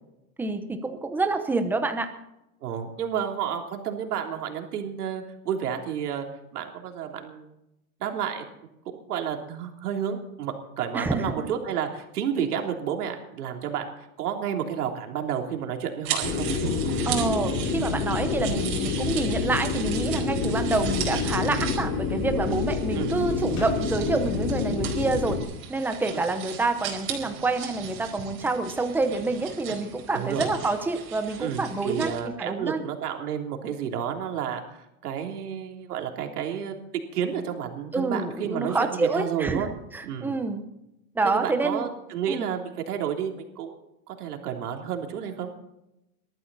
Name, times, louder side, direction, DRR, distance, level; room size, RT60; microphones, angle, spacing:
voice 1, 0.4-2.1 10.9-11.3 17.1-25.4 25.7-32.1 32.4-32.8 37.9-39.6 39.9-40.6 41.1-41.9 42.3-42.5, right 3 dB, 5° right, 7 dB, 0.9 m, -27 dB
voice 2, 2.6-6.3 6.5-7.5 8.0-8.4 9.1-16.5 22.9-23.2 26.1-26.2 30.1-30.5 31.4-36.8 37.1-39.7 40.0-40.4 41.2-43.8 44.1-45.5, right 8 dB, 85° right, 3 dB, 3.4 m, -31 dB
sound 1, 16.0-32.2, right 7 dB, 30° right, 4.7 m, -37 dB
sound 2, 16.2-25.4, left 4 dB, 30° left, 2.9 m, -28 dB
sound 3, 20.7-21.3 23.6-23.8, left 3 dB, 55° left, 7.0 m, -41 dB
20.5 x 13.5 x 4.2 m, 0.86 s
supercardioid pair, 165°, 44 cm